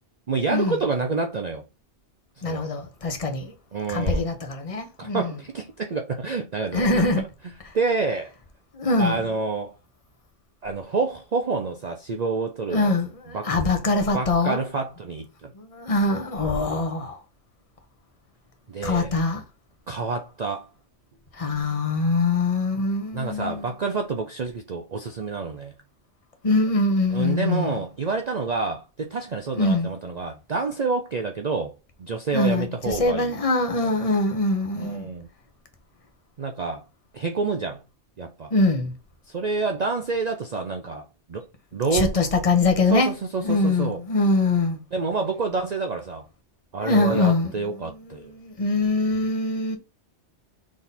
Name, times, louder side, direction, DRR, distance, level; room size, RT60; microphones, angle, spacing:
voice 1, 0.3-1.6 2.5-2.7 3.7-4.3 5.0-7.0 7.7-8.3 9.0-9.7 10.6-12.9 13.3-13.5 14.1-15.5 18.7-19.1 19.9-20.7 23.1-25.7 27.1-31.7 32.0-33.3 34.8-35.3 36.4-36.8 37.1-37.8 38.2-38.5 39.3-41.5 41.7-42.1 42.9-44.0 44.9-46.2 46.7-48.3, right 4 dB, 45° right, 0.6 m, -28 dB
voice 2, 2.4-3.5 3.9-5.3 6.7-7.2 8.7-9.2 12.7-14.6 15.6-17.2 18.8-19.4 21.4-23.7 26.4-27.7 29.5-29.9 32.3-35.1 38.5-38.9 41.9-43.1 43.4-44.8 46.8-47.5 47.8-49.8, left 2 dB, 30° left, 1.2 m, -23 dB
6.2 x 3.7 x 4.2 m
omnidirectional pair, 1.2 m